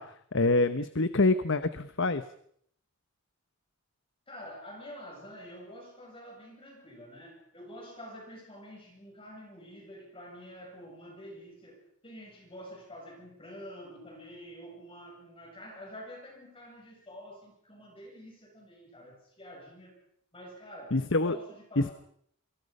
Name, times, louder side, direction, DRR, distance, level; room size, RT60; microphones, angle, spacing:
voice 1, 0.0-2.2 20.9-21.4 21.8-21.9, left 2 dB, 55° left, 12 dB, 1.1 m, -26 dB
voice 2, 4.3-19.9 20.3-21.0 21.2-21.9, equal, 25° left, 0 dB, 7.9 m, -47 dB
28.0 x 24.5 x 5.5 m, 0.67 s
head